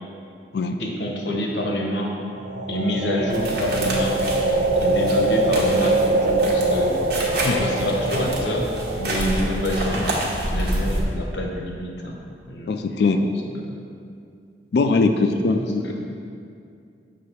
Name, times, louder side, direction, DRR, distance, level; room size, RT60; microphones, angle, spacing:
voice 1, 0.8-2.2 2.7-4.2 4.7-7.0 7.5-8.7 9.0-10.2 10.5-12.2 12.5-12.9 13.2-13.3 13.6-13.7 15.3-15.9, left 1 dB, 85° left, 0 dB, 1.0 m, -27 dB
sound 1, 2.4-10.4, right 2 dB, 80° right, 0.6 m, -23 dB
sound 2, 3.3-11.0, right 1 dB, 60° right, 1.2 m, -28 dB
voice 2, 12.7-13.2 14.7-15.9, left 3 dB, 65° left, 6 dB, 0.4 m, -21 dB
7.5 x 3.3 x 5.6 m, 2.4 s
head